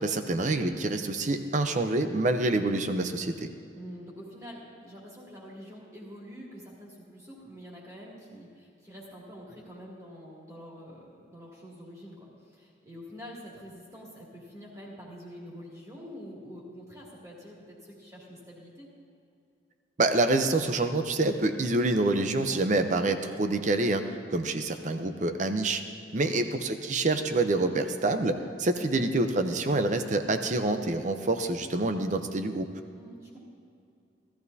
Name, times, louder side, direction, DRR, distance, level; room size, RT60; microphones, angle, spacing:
voice 1, 0.0-3.5 20.0-24.0 24.3-25.8 26.1-32.7, right 2 dB, 40° right, 8 dB, 0.6 m, -27 dB
voice 2, 3.7-18.9 26.3-26.6 32.9-33.4, equal, 20° right, -5 dB, 2.4 m, -46 dB
16.5 x 13.5 x 2.7 m, 2.5 s
head